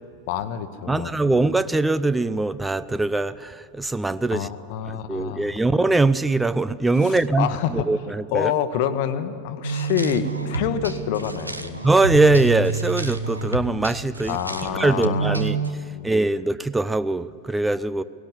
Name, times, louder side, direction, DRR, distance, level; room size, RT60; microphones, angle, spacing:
voice 1, 0.3-1.4 4.3-5.6 7.0-7.9 8.3-11.8 14.3-16.1, left 9 dB, 50° left, 1.0 m, -27 dB
voice 2, 0.9-4.5 5.1-8.5 11.8-14.4 14.7-15.6 16.0-18.0, right 2 dB, 10° right, 0.4 m, -22 dB
sound 1, 9.6-15.7, right 3 dB, 85° right, 1.0 m, -28 dB
18.0 x 17.5 x 8.4 m
figure-of-eight pair, 90°, 0 cm